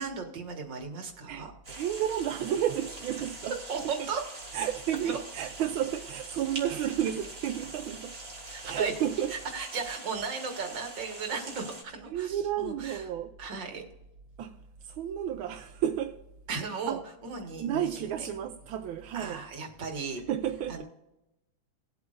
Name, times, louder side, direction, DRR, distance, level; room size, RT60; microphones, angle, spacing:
voice 1, 0.0-1.5 3.7-4.2 5.0-5.2 8.5-8.9 9.3-13.0 13.4-13.8 16.5-18.3 19.1-20.2 20.7-20.8, right 5 dB, 65° right, 2.4 m, -36 dB
voice 2, 1.3-3.5 4.0-4.1 4.5-8.2 8.6-9.3 12.1-13.3 14.4-14.6 14.8-16.2 16.9-17.0 17.6-19.4 20.3-20.8, right 10 dB, 85° right, 1.5 m, -32 dB
sound 1, 1.6-11.8, right 2 dB, 30° right, 2.7 m, -44 dB
20.0 x 8.1 x 2.6 m
omnidirectional pair, 2.2 m